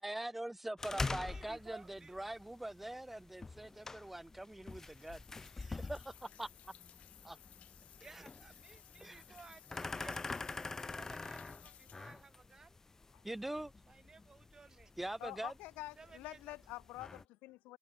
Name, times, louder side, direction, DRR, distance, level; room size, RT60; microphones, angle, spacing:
voice 1, 0.0-6.7 7.2-7.4 8.1-8.2 9.0-9.2 13.2-13.7 15.0-15.5, right 1 dB, 5° right, 3.5 m, -43 dB
sound 1, 0.8-17.2, left 3 dB, 15° left, 3.0 m, -46 dB
voice 2, 0.9-2.2 8.0-10.3 10.6-12.8 13.9-14.9 16.0-16.6, right 4 dB, 25° right, 3.6 m, -57 dB
sound 2, 4.7-12.5, left 11 dB, 55° left, 2.7 m, -60 dB
voice 3, 15.2-17.8, left 20 dB, 80° left, 3.1 m, -47 dB
cardioid pair, 120°, 3 cm